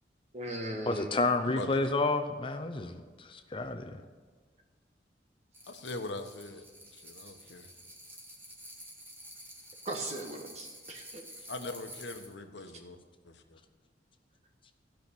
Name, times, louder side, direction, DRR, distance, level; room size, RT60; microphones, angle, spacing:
voice 1, 0.3-1.1 9.8-11.3, right 1 dB, 40° right, 3 dB, 1.5 m, -38 dB
voice 2, 0.9-4.0, left 3 dB, 30° left, 6 dB, 0.6 m, -30 dB
voice 3, 1.4-1.8 5.7-6.6 6.9-7.7 11.5-13.0 13.2-13.6, left 2 dB, 80° left, 7 dB, 1.1 m, -41 dB
sound 1, 5.5-12.3, equal, 15° right, 1.9 m, -50 dB
15.5 x 6.0 x 7.0 m, 1.5 s
head